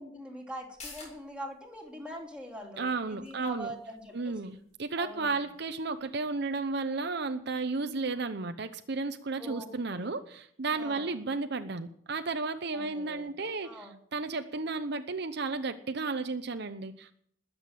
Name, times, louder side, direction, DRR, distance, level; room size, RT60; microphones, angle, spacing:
voice 1, 0.0-4.5 5.0-5.3 9.4-10.1 10.8-11.1 12.7-13.3 13.6-14.0, right 1 dB, 5° right, -1 dB, 3.2 m, -43 dB
sound 1, 0.6-7.7 8.1-8.2, left 3 dB, 35° left, 7.9 m, -55 dB
voice 2, 2.8-3.7 4.1-17.1, right 3 dB, 60° right, 9 dB, 0.8 m, -33 dB
20.5 x 8.1 x 7.5 m, 0.65 s
head